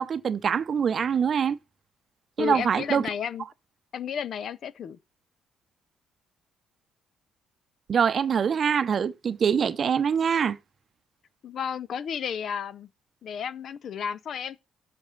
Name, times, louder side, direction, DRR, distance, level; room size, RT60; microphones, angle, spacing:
voice 1, 0.0-1.6 2.4-3.0 7.9-10.6, right 7 dB, 50° right, 0.6 m, -24 dB
voice 2, 2.4-3.5 3.9-5.0 11.4-12.9 13.2-14.6, left 7 dB, 60° left, 0.5 m, -32 dB
8.0 x 4.2 x 6.7 m
hypercardioid pair, 55°, 0 cm